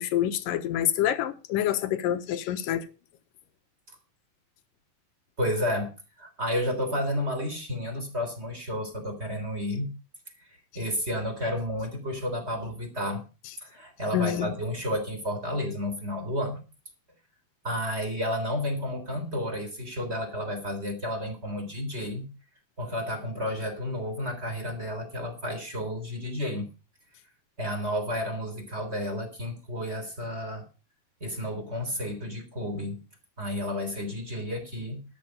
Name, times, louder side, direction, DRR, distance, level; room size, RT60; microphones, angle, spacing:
voice 1, 0.0-2.8 14.1-14.5, left 11 dB, 70° left, 2.3 m, -27 dB
voice 2, 5.4-5.9 6.2-9.9 10.7-13.2 13.6-16.6 17.6-22.3 22.8-26.7 27.6-30.6 31.2-33.0 33.4-35.0, equal, 15° right, 3.3 m, -31 dB
13.5 x 10.0 x 5.2 m
omnidirectional pair, 4.8 m